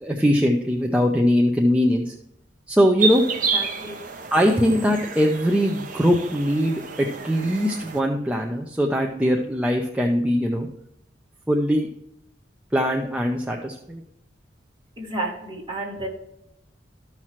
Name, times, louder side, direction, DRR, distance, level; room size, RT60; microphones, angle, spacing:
voice 1, 0.0-2.1 2.7-3.2 4.3-10.7 11.5-11.9 12.7-14.0, equal, 5° right, 0 dB, 0.6 m, -21 dB
sound 1, 3.0-8.0, right 5 dB, 50° right, 0.9 m, -30 dB
voice 2, 3.5-4.0 15.0-16.1, right 2 dB, 30° right, -3 dB, 2.2 m, -31 dB
13.5 x 5.8 x 3.1 m, 0.80 s
head